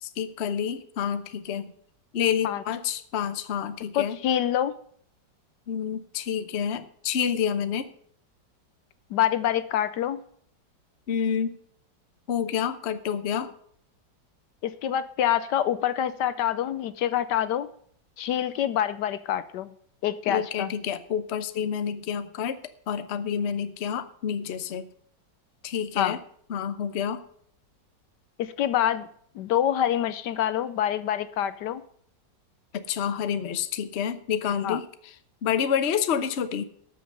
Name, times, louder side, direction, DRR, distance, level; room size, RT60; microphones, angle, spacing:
voice 1, 0.0-1.7 2.1-4.2 5.7-7.9 11.1-11.6 12.3-13.5 20.3-22.6 22.9-24.9 25.6-26.2 26.5-27.2 32.7-35.1 35.4-36.6, left 8 dB, 50° left, 11 dB, 0.9 m, -28 dB
voice 2, 3.9-4.7 9.1-10.2 14.6-17.7 18.2-19.7 20.0-20.7 26.0-26.2 28.4-29.1 29.4-31.8 34.6-34.8, left 10 dB, 75° left, 14 dB, 1.2 m, -26 dB
13.0 x 6.7 x 6.7 m, 0.63 s
omnidirectional pair, 1.9 m